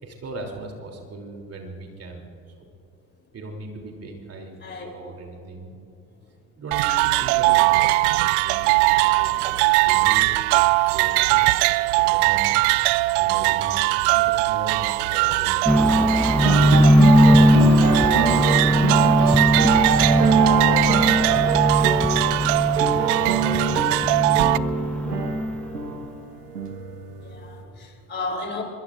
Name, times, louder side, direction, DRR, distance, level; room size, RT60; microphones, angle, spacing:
voice 1, 0.0-2.5 3.3-4.6 4.9-5.8 6.6-11.5 12.0-12.5 13.2-15.7 16.7-18.6 19.0-25.0, right 2 dB, 30° right, 2 dB, 3.3 m, -38 dB
sound 1, 6.7-24.6, right 21 dB, 50° right, 0.4 m, -21 dB
sound 2, 15.7-25.9, equal, 5° left, 0.9 m, -19 dB
sound 3, 16.3-27.6, right 5 dB, 85° right, 1.4 m, -27 dB
voice 2, 27.2-28.6, left 3 dB, 25° left, 2 dB, 3.6 m, -33 dB
24.5 x 22.5 x 2.6 m, 2.5 s
figure-of-eight pair, 70°, 46 cm